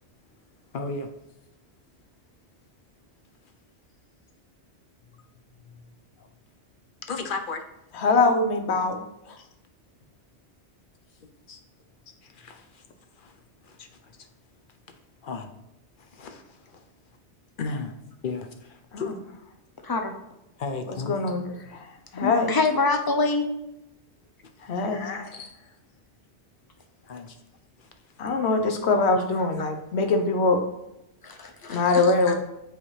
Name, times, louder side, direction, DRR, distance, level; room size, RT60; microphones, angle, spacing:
voice 1, 0.7-1.1 5.7-5.8 6.2-6.3 7.1-7.6 9.4-9.5 11.5-11.6 12.2-12.8 13.2-13.4 13.6-14.1 15.2-15.5 16.1-16.8 17.6-17.9 18.2-19.1 20.6-21.3 24.9-25.7 27.0-27.4 27.8-27.9 28.5-28.6 32.3-32.4, left 4 dB, 55° left, 6 dB, 0.7 m, -35 dB
voice 2, 7.9-9.4 18.9-19.0 20.9-22.5 24.7-25.1 28.2-30.6 31.7-32.3, left 3 dB, 70° left, 5 dB, 1.1 m, -23 dB
voice 3, 22.2-23.5 31.2-32.0, left 3 dB, 35° left, 5 dB, 0.4 m, -25 dB
8.6 x 3.5 x 3.2 m, 0.88 s
omnidirectional pair, 1.2 m